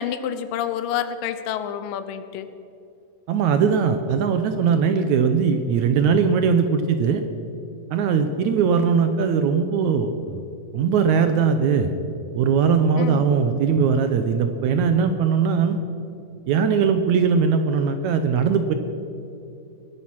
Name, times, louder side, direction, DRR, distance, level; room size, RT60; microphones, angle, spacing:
voice 1, 0.0-2.5 13.0-13.3, left 9 dB, 80° left, 11 dB, 2.4 m, -28 dB
voice 2, 3.3-7.2 7.9-10.4 10.7-11.9 12.4-15.8 16.5-18.7, right 6 dB, 70° right, 8 dB, 1.9 m, -20 dB
20.5 x 10.5 x 5.8 m, 2.7 s
omnidirectional pair, 3.9 m